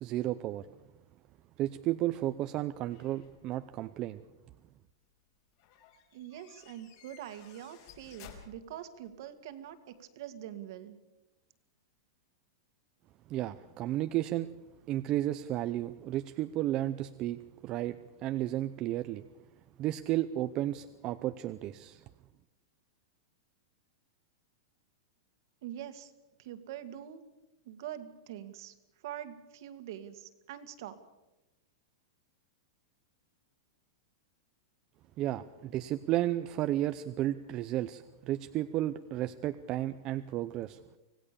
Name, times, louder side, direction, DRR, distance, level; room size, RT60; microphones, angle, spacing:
voice 1, 0.0-0.6 1.6-4.2 13.3-14.5 14.9-19.2 19.8-22.0 35.2-40.8, right 14 dB, 30° right, 10 dB, 0.6 m, -33 dB
sound 1, 2.9-3.8 5.6-9.2, left 9 dB, 50° left, 4.8 m, -56 dB
voice 2, 6.1-11.0 25.6-26.1 26.4-27.2 27.7-31.0, right 11 dB, 55° right, 9 dB, 2.1 m, -44 dB
25.5 x 17.5 x 7.0 m, 1.0 s
supercardioid pair, 160°, 2 cm